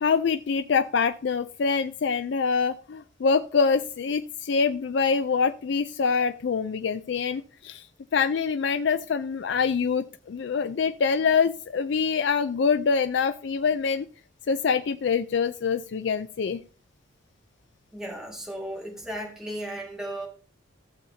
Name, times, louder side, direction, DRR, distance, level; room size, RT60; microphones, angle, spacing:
voice 1, 0.0-7.9 8.1-14.1 14.5-16.6, left 5 dB, 60° left, 10 dB, 0.4 m, -25 dB
voice 2, 17.9-20.3, right 1 dB, 5° right, -1 dB, 1.9 m, -35 dB
15.0 x 7.1 x 2.7 m, 0.38 s
head